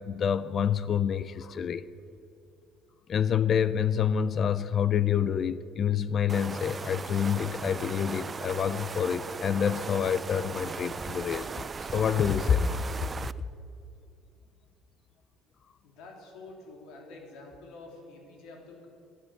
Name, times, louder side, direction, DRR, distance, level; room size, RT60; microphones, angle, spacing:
voice 1, 0.0-1.9 3.1-12.8, left 8 dB, 45° left, 15 dB, 0.4 m, -27 dB
sound 1, 6.3-13.3, right 5 dB, 25° right, 0.3 m, -38 dB
voice 2, 15.8-18.9, left 2 dB, 80° left, 0 dB, 3.2 m, -48 dB
12.0 x 9.8 x 7.9 m, 2.5 s
cardioid pair, 115°, 0 cm